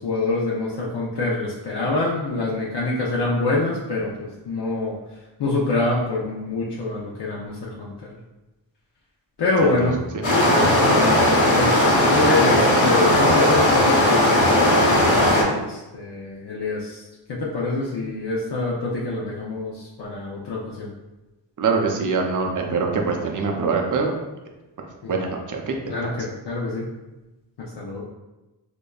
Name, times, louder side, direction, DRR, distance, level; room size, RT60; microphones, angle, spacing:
voice 1, 0.0-4.9 5.4-8.1 9.4-10.0 10.8-14.9 15.6-20.9 25.0-25.1 25.9-26.9 27.6-28.0, left 3 dB, 60° left, -5 dB, 0.6 m, -26 dB
sound 1, 10.2-15.4, left 1 dB, 80° left, 1.2 m, -17 dB
voice 2, 21.6-24.1 25.1-25.8, right 4 dB, 40° right, 2 dB, 0.5 m, -24 dB
5.1 x 2.2 x 2.3 m, 1.0 s
wide cardioid pair, 100°, 47 cm